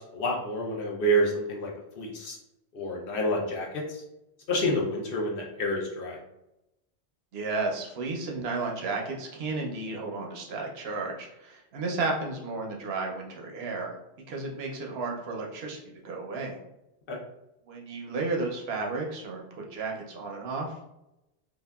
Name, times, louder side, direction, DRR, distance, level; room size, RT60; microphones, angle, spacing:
voice 1, 0.0-1.7 2.0-2.4 2.7-4.0 4.5-6.2 17.1-17.2, equal, 60° left, -2 dB, 0.7 m, -28 dB
voice 2, 7.3-13.9 14.3-16.6 17.7-20.7, right 3 dB, 70° right, 0 dB, 0.8 m, -33 dB
2.7 x 2.3 x 2.2 m, 0.88 s
omnidirectional pair, 1.1 m